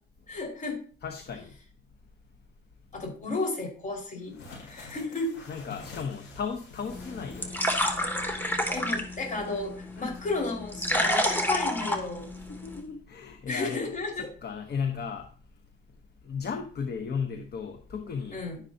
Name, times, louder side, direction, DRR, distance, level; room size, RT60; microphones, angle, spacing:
voice 1, 0.3-0.8 2.9-5.3 8.7-12.3 13.5-14.3 18.3-18.6, left 3 dB, 40° left, 5.2 m, -33 dB
voice 2, 1.0-1.6 5.5-7.8 12.4-13.9 14.2-15.3 16.2-18.4, left 6 dB, 55° left, 1.2 m, -35 dB
sound 1, 4.2-8.2 8.5-8.6 9.4-10.2, left 3 dB, 75° left, 5.5 m, -48 dB
sound 2, 6.9-12.8, equal, 10° left, 2.4 m, -30 dB
12.0 x 10.0 x 2.9 m
cardioid pair, 90°, 20 cm